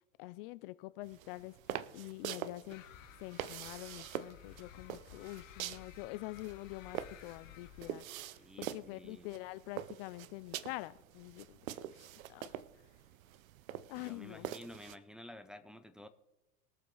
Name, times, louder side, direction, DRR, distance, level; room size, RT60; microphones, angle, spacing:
voice 1, 0.2-1.5 1.9-2.8 3.2-8.1 8.6-12.6 13.9-14.5, left 20 dB, 45° left, 16 dB, 0.4 m, -46 dB
sound 1, 1.0-15.0, right 12 dB, 80° right, 0.8 m, -45 dB
sound 2, 2.7-7.9, left 12 dB, 65° left, 1.5 m, -55 dB
voice 2, 8.4-9.3 14.0-16.1, left 1 dB, ahead, 7 dB, 0.6 m, -52 dB
21.5 x 7.2 x 3.9 m, 0.97 s
supercardioid pair, 130°, 41 cm